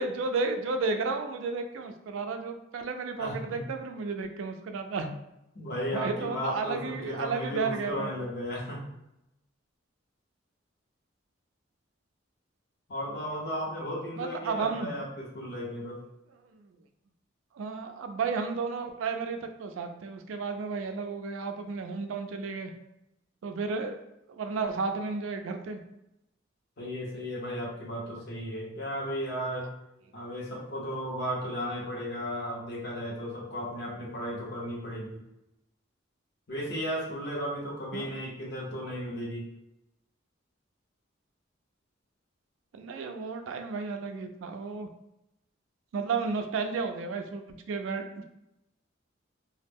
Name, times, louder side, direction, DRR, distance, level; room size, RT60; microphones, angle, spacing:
voice 1, 0.0-5.1 5.9-8.1 14.2-14.9 16.5-16.7 17.5-22.7 23.4-23.9 24.4-25.8 37.9-38.1 42.7-44.9 45.9-48.2, right 4 dB, 85° right, 6 dB, 0.3 m, -33 dB
voice 2, 3.2-3.6 5.5-8.8 12.9-16.0 26.8-29.7 30.1-35.2 36.5-39.5, equal, 55° left, -3 dB, 0.8 m, -35 dB
2.2 x 2.0 x 3.4 m, 0.87 s
head